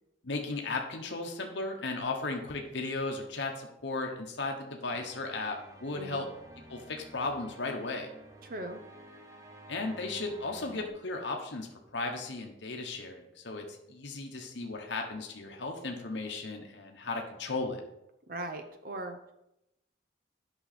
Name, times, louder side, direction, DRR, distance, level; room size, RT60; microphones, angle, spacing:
voice 1, 0.2-6.3 6.7-8.1 9.7-11.7 11.9-17.8, left 3 dB, 70° left, 2 dB, 1.0 m, -35 dB
sound 1, 4.9-10.9, right 1 dB, 20° right, 1.0 m, -52 dB
voice 2, 5.9-6.2 8.4-8.8 18.3-19.3, right 1 dB, 45° right, 7 dB, 0.7 m, -39 dB
8.9 x 6.1 x 4.2 m, 0.86 s
head